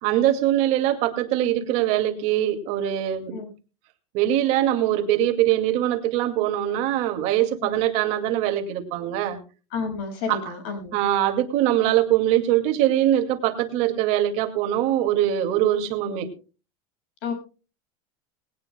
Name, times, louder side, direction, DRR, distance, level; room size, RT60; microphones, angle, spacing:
voice 1, 0.0-3.3 4.1-9.4 10.3-10.5 10.9-16.3, right 12 dB, 50° right, 6 dB, 2.2 m, -22 dB
voice 2, 9.7-10.9 17.2-17.3, left 5 dB, 60° left, 5 dB, 6.4 m, -30 dB
19.5 x 18.0 x 2.2 m, 0.34 s
supercardioid pair, 160°, 15 cm